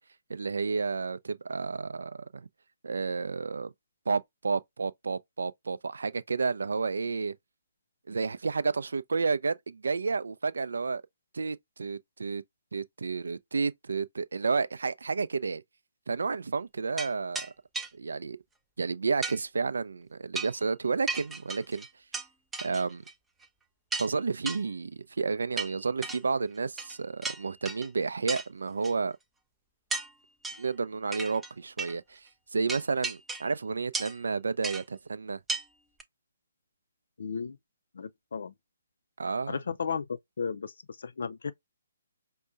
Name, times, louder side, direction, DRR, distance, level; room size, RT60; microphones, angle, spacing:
voice 1, 0.3-2.5 2.8-3.7 4.1-7.3 8.1-11.0 11.3-12.4 12.7-15.6 16.1-17.5 17.9-18.4 18.8-21.9 22.6-23.0 24.0-29.2 30.6-35.4 39.2-39.6, right 4 dB, 65° right, 0.4 m, -31 dB
sound 1, 17.0-17.1 17.3-17.5 17.7-17.9 19.2-19.4 20.3-20.6 21.1-22.3 22.5-23.1 23.4-23.5 23.9-24.1 24.5-24.6 25.6-26.2 26.8-27.0 27.2-27.9 28.3-28.5 28.8-28.9 29.9-30.1 30.4-30.7 31.1-31.5 31.8-31.9 32.7-33.5 33.9-34.2 34.6-34.8 35.5-35.6 36.0-36.1, right 3 dB, 5° right, 0.4 m, -35 dB
voice 2, 37.2-37.6 37.9-38.5 39.5-41.5, left 6 dB, 60° left, 0.4 m, -34 dB
5.2 x 2.2 x 2.4 m
figure-of-eight pair, 135°, 0 cm